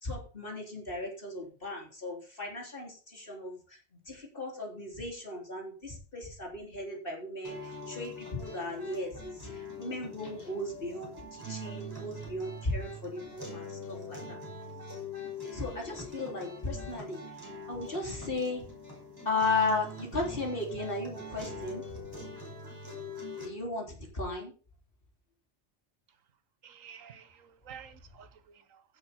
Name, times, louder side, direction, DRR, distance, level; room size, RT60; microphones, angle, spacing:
voice 1, 0.0-3.5 4.1-9.5 9.8-14.4 15.5-17.2 17.7-18.6 19.3-21.8 23.4-24.5, left 2 dB, 45° left, 3.6 m, -35 dB
sound 1, 7.4-23.5, left 1 dB, 15° right, 5.5 m, -43 dB
voice 2, 26.6-28.8, right 8 dB, 90° right, 1.4 m, -51 dB
16.0 x 6.6 x 4.3 m
omnidirectional pair, 1.3 m